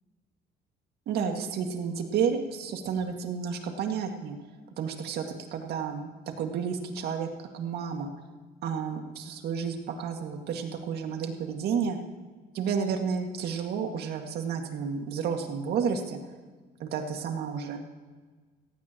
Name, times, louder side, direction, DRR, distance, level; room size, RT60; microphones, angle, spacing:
voice 1, 1.1-4.4 4.8-5.3 5.5-6.1 6.4-8.1 8.6-12.0 12.5-16.2 16.8-17.8, right 6 dB, 70° right, 4 dB, 2.0 m, -31 dB
17.5 x 15.5 x 3.0 m, 1.4 s
cardioid pair, 110°, 17 cm